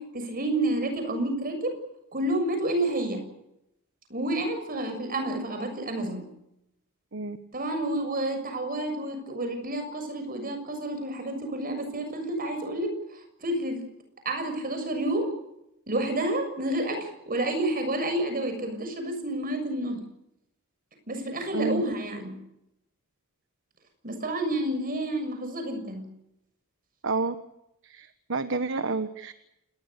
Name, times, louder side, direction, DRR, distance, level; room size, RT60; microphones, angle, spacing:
voice 1, 0.0-1.8 2.1-3.2 4.1-6.2 7.5-13.8 14.2-15.3 15.9-20.0 21.1-22.4 24.0-26.0, right 1 dB, 40° right, 7 dB, 6.8 m, -29 dB
voice 2, 21.5-21.8 27.0-27.3 27.8-29.5, right 3 dB, 60° right, 10 dB, 1.3 m, -29 dB
28.5 x 20.5 x 6.8 m, 0.83 s
head